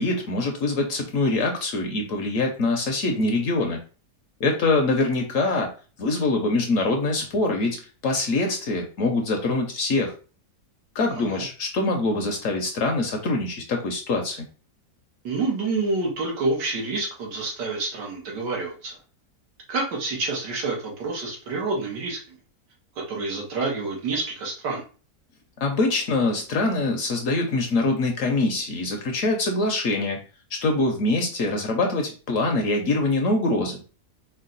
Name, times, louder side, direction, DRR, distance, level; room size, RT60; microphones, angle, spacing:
voice 1, 0.0-3.8 4.4-5.7 6.0-7.8 8.0-10.1 10.9-14.5 25.6-30.2 30.5-33.8, left 2 dB, 65° left, 3 dB, 0.9 m, -24 dB
voice 2, 11.1-11.4 15.2-19.0 19.7-22.4 23.1-24.8, right 3 dB, 85° right, -1 dB, 1.9 m, -28 dB
4.5 x 2.2 x 3.9 m, 0.37 s
omnidirectional pair, 1.8 m